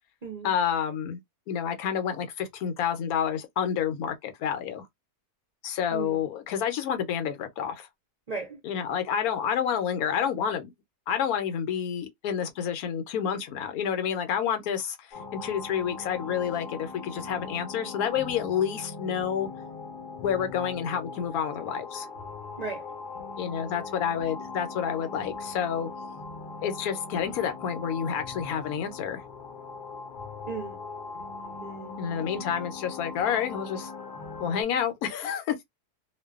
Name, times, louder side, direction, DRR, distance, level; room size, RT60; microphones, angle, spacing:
voice 1, 0.4-1.2 1.5-4.9 5.6-7.9 8.6-10.7 11.1-19.5 20.2-22.1 23.4-25.9 26.6-29.2 32.0-33.9 34.4-35.5, left 8 dB, 75° left, 1.0 m, -29 dB
voice 2, 5.9-6.2 8.3-8.6 22.6-22.9 30.5-30.8 31.6-32.0, right 4 dB, 60° right, 0.4 m, -36 dB
sound 1, 15.1-34.6, left 4 dB, 45° left, 0.6 m, -40 dB
2.5 x 2.2 x 2.3 m
omnidirectional pair, 1.6 m